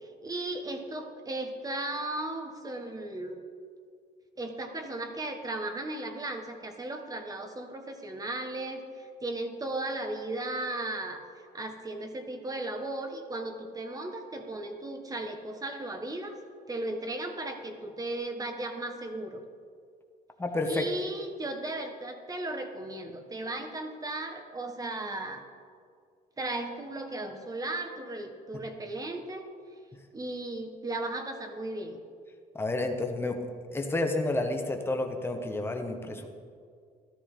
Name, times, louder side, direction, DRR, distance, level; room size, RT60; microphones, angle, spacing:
voice 1, 0.2-3.4 4.4-11.2 11.5-16.4 16.7-19.4 20.6-25.4 26.4-29.5 30.1-32.0, right 2 dB, 20° right, 5 dB, 1.4 m, -36 dB
voice 2, 20.4-20.9 32.5-33.4 33.7-36.3, left 2 dB, 15° left, 3 dB, 1.4 m, -30 dB
13.5 x 13.0 x 3.8 m, 2.1 s
cardioid pair, 110°, 17 cm